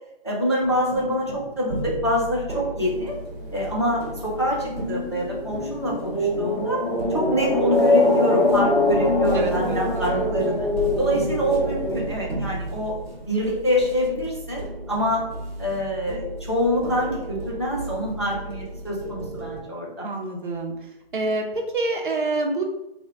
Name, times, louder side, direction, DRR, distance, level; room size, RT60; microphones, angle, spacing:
voice 1, 0.2-3.1 3.5-6.8 7.1-10.7 11.0-12.9 13.3-15.2 15.6-20.1, equal, 30° left, -3 dB, 0.4 m, -25 dB
metal arythmic hits, 0.6-19.6, right 1 dB, 85° right, 1.1 m, -34 dB
sound 1, 2.8-12.1, left 2 dB, 55° left, 1.4 m, -24 dB
voice 2, 9.3-10.4 20.0-20.7 21.1-22.6, right 2 dB, 55° right, 2 dB, 0.6 m, -27 dB
3.3 x 2.3 x 3.3 m, 0.92 s
hypercardioid pair, 180°, 31 cm